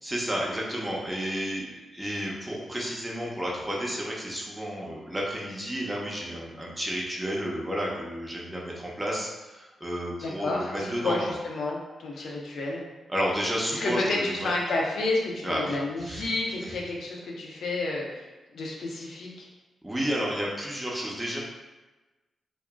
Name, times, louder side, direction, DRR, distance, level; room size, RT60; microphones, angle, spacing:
voice 1, 0.0-11.1 12.2-12.3 13.1-14.5 15.4-16.3 16.6-16.7 19.8-21.4, equal, 15° right, -4 dB, 0.9 m, -31 dB
voice 2, 10.2-12.8 13.7-18.2 18.5-19.5, left 2 dB, 75° left, -2 dB, 0.6 m, -30 dB
2.4 x 2.0 x 3.6 m, 1.2 s
supercardioid pair, 45°, 0 cm